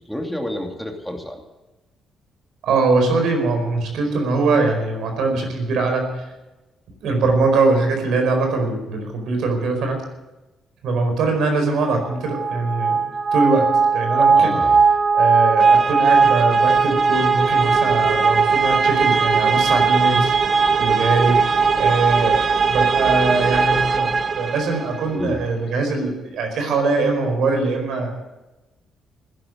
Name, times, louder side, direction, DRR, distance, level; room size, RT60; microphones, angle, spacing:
voice 1, 0.1-1.4 14.2-14.8 25.1-25.4, left 1 dB, ahead, 2 dB, 2.7 m, -29 dB
voice 2, 2.6-6.3 7.0-10.0 10.8-13.0 13.3-14.6 15.1-20.4 20.8-28.2, right 3 dB, 80° right, 4 dB, 4.6 m, -22 dB
sound 1, 12.3-25.1, right 5 dB, 40° right, 1.1 m, -18 dB
16.0 x 10.5 x 7.9 m, 1.0 s
cardioid pair, 90°, 0 cm